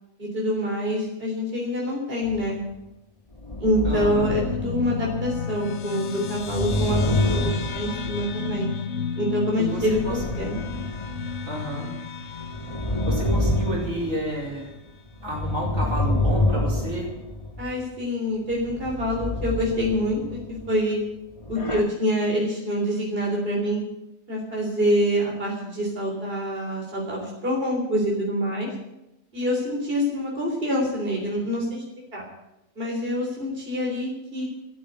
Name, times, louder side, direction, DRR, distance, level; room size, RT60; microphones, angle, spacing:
voice 1, 0.2-2.6 3.6-8.7 9.2-10.6 17.6-21.0 21.5-23.8 24.3-28.7 29.3-32.3 32.8-34.4, equal, 45° right, -2 dB, 3.9 m, -26 dB
sound 1, 2.2-2.6 3.3-5.7 6.2-8.6 9.6-11.8 12.3-14.7 15.1-17.8 18.5-20.8 21.4-21.8, left 1 dB, 25° left, 1.9 m, -28 dB
sound 2, 3.8-14.6, left 5 dB, 60° left, 1.0 m, -33 dB
voice 2, 3.8-4.3 9.6-10.5 11.5-11.9 13.0-14.7 15.2-17.1, right 1 dB, 80° right, -4 dB, 5.1 m, -31 dB
14.0 x 8.9 x 9.3 m, 0.90 s
omnidirectional pair, 1.4 m